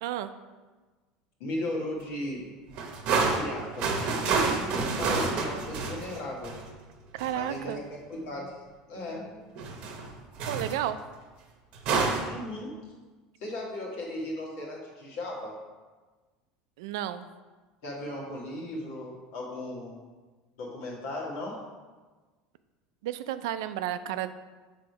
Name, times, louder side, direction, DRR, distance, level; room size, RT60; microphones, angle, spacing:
voice 1, 0.0-0.3 7.1-7.8 10.5-11.0 16.8-17.3 23.0-24.3, right 12 dB, 90° right, 12 dB, 0.3 m, -32 dB
voice 2, 1.4-2.5 3.2-6.5 7.3-7.8 8.1-8.6 8.9-9.5 12.3-12.8 13.4-15.5 17.8-20.0 20.6-21.7, left 1 dB, 80° left, -3 dB, 1.8 m, -36 dB
sound 1, 2.7-6.7 7.2-7.4 9.6-10.1 10.4-10.8 11.8-12.3, right 4 dB, 50° right, 0.8 m, -28 dB
6.2 x 3.8 x 4.7 m, 1.3 s
cardioid pair, 155°, 2 cm